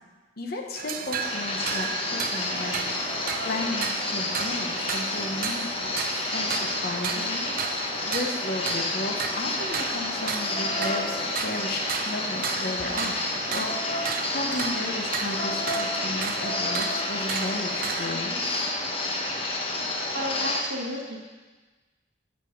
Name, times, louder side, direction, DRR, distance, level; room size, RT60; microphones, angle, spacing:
voice 1, 0.4-3.1 3.4-5.9 6.3-7.6 8.1-13.2 13.5-18.7, left 2 dB, 55° left, 2 dB, 0.9 m, -34 dB
sound 1, 0.8-18.2, right 6 dB, 50° right, 0.4 m, -34 dB
sound 2, 1.2-20.6, left 2 dB, 30° left, 0.9 m, -30 dB
voice 2, 20.1-21.2, equal, 75° right, -5 dB, 1.2 m, -32 dB
7.7 x 7.5 x 5.1 m, 1.3 s
head